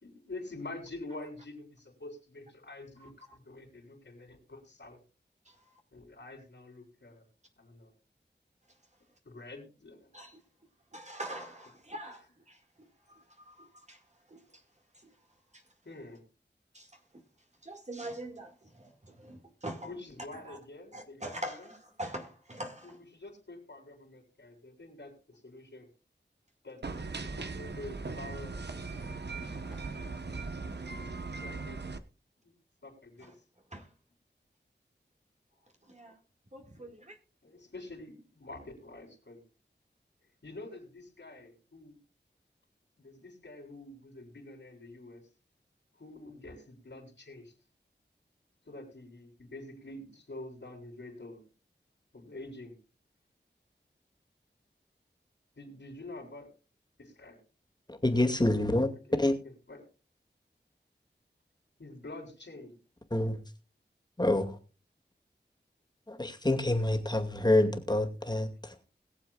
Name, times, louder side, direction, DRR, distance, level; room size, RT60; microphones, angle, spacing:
voice 1, 0.0-5.0 5.9-7.3 7.6-7.9 9.2-10.1 15.8-16.2 19.8-21.6 22.8-25.9 26.6-28.6 31.4-31.8 32.4-32.5 32.8-33.4 36.7-36.9 37.4-39.4 40.4-42.0 43.0-45.3 45.9-47.5 48.6-51.4 52.1-52.8 55.5-56.5 57.0-57.4 59.1-59.9 61.8-62.8, left 2 dB, 75° left, 3.7 m, -47 dB
voice 2, 3.0-3.4 5.5-5.7 10.1-10.4 10.9-14.6 14.9-15.2 15.5-15.6 16.7-17.3 17.6-19.9 20.3-20.6 20.9-23.0 27.4-27.5 29.7-29.9 33.2-33.3 33.7-33.9 35.8-36.2 36.5-37.2, right 1 dB, 40° right, 2.0 m, -44 dB
sound 1, 26.8-32.0, right 3 dB, 65° right, 1.0 m, -39 dB
voice 3, 57.9-58.9 59.2-59.4 63.1-63.4 64.2-64.6 66.1-68.7, left 1 dB, 20° left, 2.2 m, -27 dB
21.5 x 7.5 x 2.4 m
wide cardioid pair, 55°, 19 cm